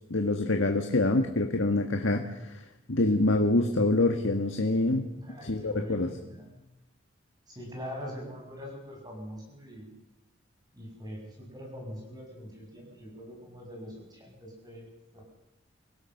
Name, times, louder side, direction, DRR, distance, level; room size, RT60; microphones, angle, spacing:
voice 1, 0.1-2.5 2.9-5.1 5.4-6.1, left 2 dB, 80° left, 4 dB, 1.6 m, -26 dB
voice 2, 5.1-6.6 7.5-9.9 10.7-15.2, equal, 20° right, 0 dB, 7.2 m, -43 dB
25.0 x 17.0 x 6.6 m, 0.99 s
head